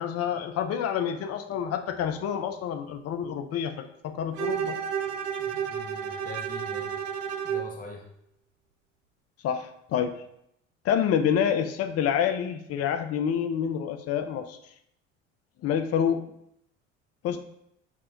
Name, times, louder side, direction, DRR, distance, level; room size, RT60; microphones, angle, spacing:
voice 1, 0.0-4.8 9.4-10.1 10.8-14.6 15.6-16.2 17.2-17.4, left 8 dB, 40° left, 7 dB, 0.6 m, -27 dB
Bowed string instrument, 4.3-7.7, right 8 dB, 65° right, 0.6 m, -31 dB
voice 2, 5.4-7.0 7.4-8.1, left 1 dB, 25° left, 0 dB, 0.9 m, -43 dB
7.0 x 2.4 x 2.9 m, 0.76 s
hypercardioid pair, 65°, 36 cm